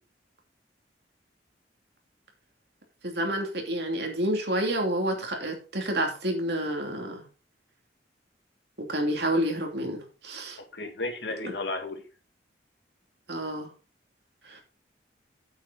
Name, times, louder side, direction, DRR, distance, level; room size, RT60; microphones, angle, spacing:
voice 1, 3.0-7.2 8.8-10.6 11.4-11.5 13.3-13.7 14.4-14.6, right 1 dB, 65° right, 2 dB, 2.8 m, -29 dB
voice 2, 10.7-12.0, left 2 dB, 70° left, 4 dB, 2.3 m, -33 dB
8.7 x 8.6 x 4.1 m, 0.34 s
head